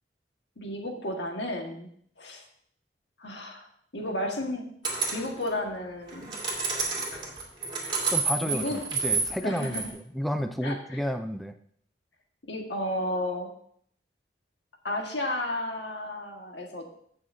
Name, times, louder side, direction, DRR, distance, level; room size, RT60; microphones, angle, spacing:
voice 1, 0.6-1.9 2.2-2.4 3.2-3.7 3.9-4.7 5.1-6.4 7.1-7.3 7.8-8.1 8.4-8.8 9.4-9.8 10.6-11.0 12.5-13.5 14.8-16.8, left 1 dB, 90° left, 2 dB, 1.6 m, -33 dB
sound 1, 4.8-5.3 6.1-9.9, right 4 dB, 25° right, 2.2 m, -29 dB
voice 2, 8.1-9.9 10.1-11.5, equal, ahead, 7 dB, 0.4 m, -31 dB
16.0 x 6.2 x 2.7 m, 0.63 s
head